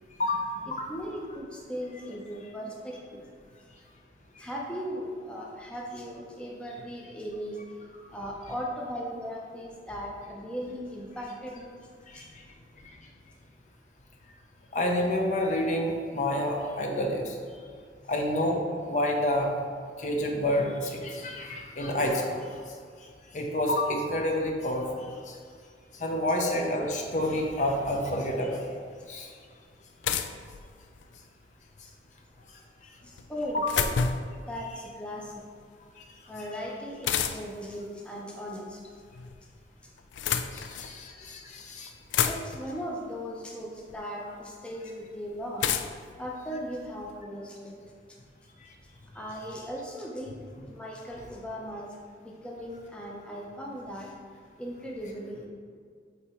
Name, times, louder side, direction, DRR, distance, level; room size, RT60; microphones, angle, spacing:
voice 1, 0.2-0.9 4.3-4.4 12.1-12.5 12.8-13.0 14.7-17.4 18.1-19.5 20.0-25.4 25.9-28.7 29.1-29.4 32.8-32.9 33.5-33.7 36.0-36.1 40.5-41.9 48.6-48.7, left 1 dB, 40° left, 1 dB, 0.7 m, -29 dB
voice 2, 0.9-3.3 4.4-7.6 8.1-11.8 12.1-12.2 31.8-31.9 33.3-33.6 34.5-35.4 36.3-38.8 42.2-45.6 46.2-47.8 49.1-51.9 52.2-54.1 54.6-55.5, equal, 5° left, -3 dB, 0.6 m, -38 dB
sound 1, 29.0-29.1 30.0-31.2 33.2-34.4 37.0-37.7 38.8-39.4 40.0-41.0 41.6-41.7 41.9-42.8 43.9-44.0 45.6-47.1, left 7 dB, 85° left, 0.3 m, -30 dB
8.2 x 2.9 x 4.4 m, 2.1 s
head